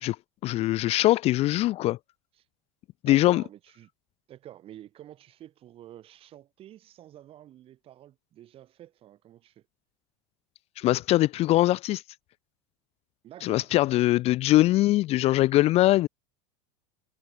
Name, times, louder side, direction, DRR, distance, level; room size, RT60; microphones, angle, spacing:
voice 1, 0.4-2.0 3.1-3.4 10.8-12.0 13.4-16.1, left 16 dB, 40° left, 0.8 m, -22 dB
voice 2, 3.1-3.9 4.3-9.7 13.2-13.7, right 12 dB, 35° right, 5.5 m, -49 dB
supercardioid pair, 140°, 16 cm